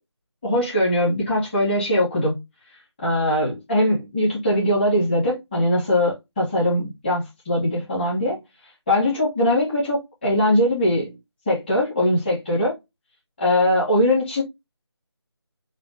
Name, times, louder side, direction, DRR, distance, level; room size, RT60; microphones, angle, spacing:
voice 1, 0.4-2.4 3.0-8.4 8.9-11.2 11.5-12.7 13.4-14.4, left 1 dB, 20° left, 1.8 m, -21 dB
5.0 x 2.8 x 3.0 m
figure-of-eight pair, 165°, 14 cm